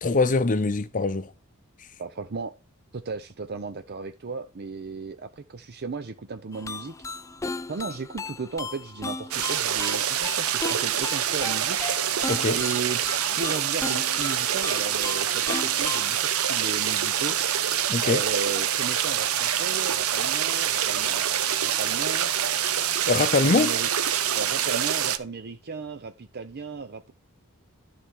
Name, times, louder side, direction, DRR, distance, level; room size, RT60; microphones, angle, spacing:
voice 1, 0.0-1.3 12.3-12.6 17.9-18.2 23.1-23.7, left 3 dB, 40° left, 0.7 m, -23 dB
voice 2, 2.0-2.5 2.9-6.9 7.7-12.0 12.5-13.0 13.4-17.4 18.0-22.3 23.5-23.9 24.3-27.1, right 4 dB, 50° right, 0.6 m, -35 dB
sound 1, 6.5-16.2, left 3 dB, 15° left, 0.3 m, -36 dB
sound 2, 9.3-25.2, right 9 dB, 80° right, 0.8 m, -26 dB
12.5 x 4.2 x 4.6 m
head